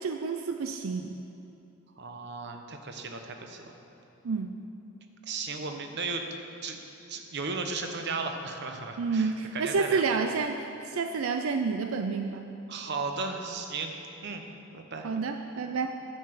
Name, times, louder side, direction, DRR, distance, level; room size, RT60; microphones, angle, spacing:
voice 1, 0.0-1.2 4.2-4.5 9.0-12.5 15.0-16.0, right 4 dB, 90° right, 6 dB, 0.5 m, -29 dB
voice 2, 2.0-3.7 5.3-6.2 6.6-6.8 7.1-10.0 12.7-13.9 14.2-14.4 14.7-15.1, right 4 dB, 55° right, 4 dB, 0.9 m, -35 dB
9.9 x 6.8 x 7.7 m, 2.9 s
head